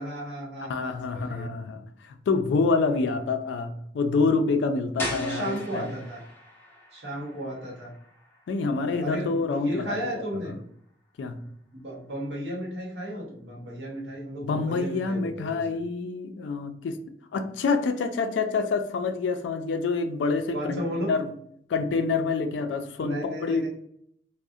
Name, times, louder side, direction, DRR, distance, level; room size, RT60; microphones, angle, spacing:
voice 1, 0.0-1.5 3.0-3.1 5.1-6.2 6.9-7.9 8.8-10.5 11.7-15.6 20.5-21.1 23.0-23.7, equal, 70° right, -3 dB, 0.9 m, -34 dB
voice 2, 0.7-5.9 8.5-10.2 11.2-11.4 14.4-17.0 17.3-21.3 21.7-23.7, left 4 dB, 90° left, 8 dB, 0.3 m, -27 dB
sound 1, 5.0-10.6, left 1 dB, 15° left, 0.6 m, -40 dB
2.4 x 2.0 x 2.6 m, 0.67 s
head